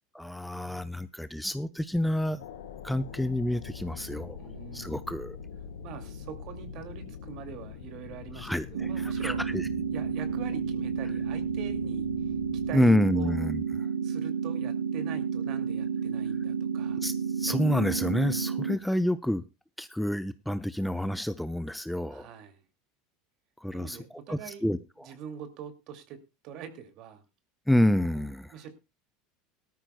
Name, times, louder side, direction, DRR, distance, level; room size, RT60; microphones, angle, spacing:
voice 1, 0.1-2.4 2.8-4.4 4.7-5.4 8.4-9.6 12.7-13.6 17.0-19.4 19.8-22.3 23.6-24.0 24.3-24.8 27.7-28.5, left 1 dB, 5° left, 0.7 m, -28 dB
sound 1, 2.4-12.8, left 7 dB, 85° left, 1.6 m, -43 dB
voice 2, 4.4-5.0 5.8-9.4 9.9-12.3 12.7-13.4 14.0-17.0 22.1-22.6 23.7-24.7 25.0-26.2 26.4-27.2 28.5-28.7, right 8 dB, 55° right, 2.4 m, -43 dB
sound 2, 8.7-18.8, right 6 dB, 90° right, 0.8 m, -31 dB
18.0 x 13.5 x 2.2 m
hypercardioid pair, 95°, 0 cm